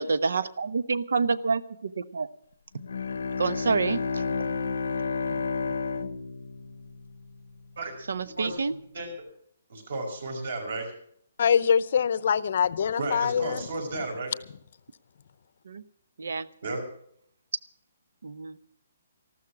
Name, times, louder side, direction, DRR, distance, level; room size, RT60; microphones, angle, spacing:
voice 1, 0.0-2.3 3.4-4.2 8.1-8.7 15.6-15.8 16.2-16.5 18.2-18.6, right 4 dB, 85° right, 0.9 m, -28 dB
Bowed string instrument, 2.8-7.6, left 5 dB, 80° left, 0.8 m, -31 dB
voice 2, 8.9-9.3 9.7-10.9 13.0-14.3 16.6-16.8, right 2 dB, 55° right, 5.5 m, -33 dB
voice 3, 11.4-13.7, left 7 dB, 45° left, 0.7 m, -24 dB
14.0 x 13.0 x 6.0 m
hypercardioid pair, 180°, 0 cm